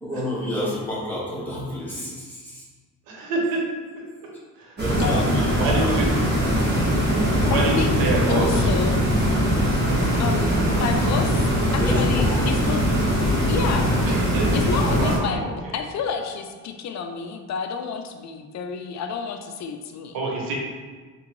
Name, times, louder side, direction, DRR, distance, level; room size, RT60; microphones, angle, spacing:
voice 1, 0.0-2.6 4.8-6.2 6.6-6.8 7.3-7.7 10.2-10.3 11.8-12.4, equal, 5° left, -8 dB, 1.4 m, -29 dB
voice 2, 3.1-3.6 4.6-4.8 5.6-6.0 7.4-8.7 14.1-14.5 14.8-15.5 20.1-20.5, right 2 dB, 85° right, -2 dB, 1.0 m, -26 dB
sound 1, 4.8-15.2, equal, 30° right, 1.3 m, -21 dB
voice 3, 5.0-5.4 7.5-8.0 8.3-9.0 10.2-12.9 13.5-14.0 14.5-20.2, left 6 dB, 55° left, 6 dB, 0.4 m, -30 dB
3.5 x 3.0 x 3.0 m, 1.4 s
cardioid pair, 90°, 34 cm